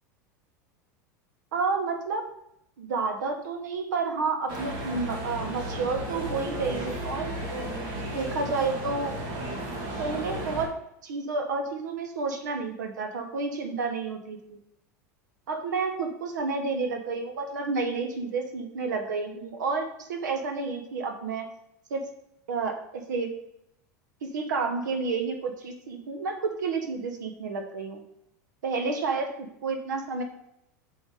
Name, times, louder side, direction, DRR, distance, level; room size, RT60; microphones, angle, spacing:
voice 1, 1.5-2.2 2.8-7.4 8.1-9.1 10.0-10.7 11.0-14.6 15.5-21.5 21.9-22.1 22.5-23.3 24.2-28.0 28.6-30.2, right 4 dB, 85° right, 5 dB, 1.2 m, -30 dB
sound 1, 4.5-10.6, right 1 dB, 55° right, 2.1 m, -34 dB
6.1 x 5.4 x 4.9 m, 0.78 s
hypercardioid pair, 100°, 10 cm